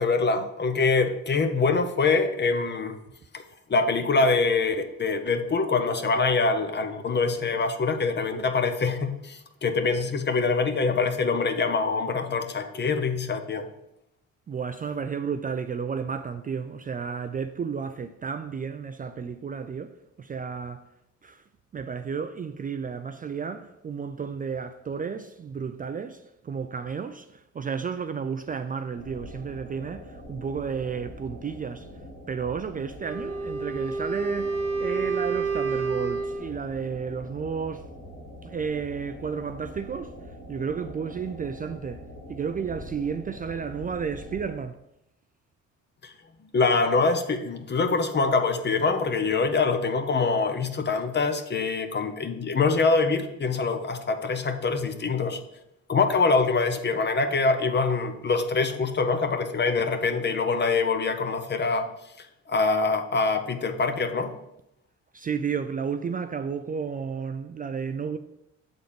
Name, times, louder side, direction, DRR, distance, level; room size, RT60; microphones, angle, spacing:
voice 1, 0.0-3.0 3.3-3.4 3.7-13.7 46.0-46.1 46.5-55.4 55.9-61.9 62.2-64.3, left 4 dB, 35° left, 0.8 m, -24 dB
voice 2, 14.5-20.9 21.2-21.4 21.7-31.9 32.3-37.9 38.4-44.8 65.1-68.2, right 6 dB, 30° right, 0.4 m, -32 dB
sound 1, 28.9-44.6, equal, 80° left, 1.5 m, -44 dB
Wind instrument woodwind instrument, 33.0-36.5, right 4 dB, 50° right, 0.9 m, -29 dB
7.0 x 3.9 x 5.1 m
cardioid pair, 90°, 30 cm